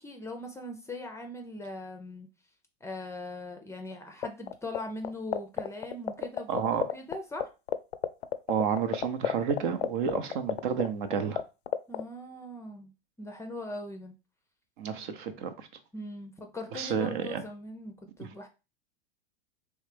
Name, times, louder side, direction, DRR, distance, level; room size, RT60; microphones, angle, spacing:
voice 1, 0.0-2.3 2.8-7.5 11.9-12.9 13.2-14.1 15.9-18.5, left 2 dB, 10° left, 0.5 m, -40 dB
sound 1, 4.2-4.8 5.0-7.1 7.4-7.5 7.7-11.4 11.7-12.0, left 12 dB, 85° left, 0.5 m, -27 dB
voice 2, 6.5-6.8 8.5-11.4 14.8-15.7 16.7-17.4 18.2-18.3, right 7 dB, 55° right, 0.8 m, -30 dB
3.2 x 3.2 x 3.4 m
hypercardioid pair, 100°, 31 cm